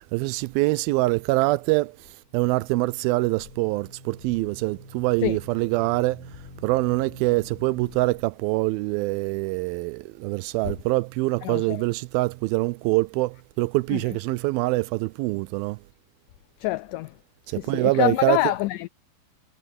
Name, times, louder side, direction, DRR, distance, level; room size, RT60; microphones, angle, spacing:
voice 1, 0.0-1.9 2.3-6.2 6.6-15.8 17.5-18.4, right 21 dB, 85° right, 2.3 m, -24 dB
sound 1, 2.3-8.1 10.6-11.4, left 3 dB, 60° left, 4.3 m, -44 dB
voice 2, 11.4-11.8 13.9-14.0 16.6-17.1 17.6-18.9, left 18 dB, 90° left, 1.8 m, -26 dB
omnidirectional pair, 4.2 m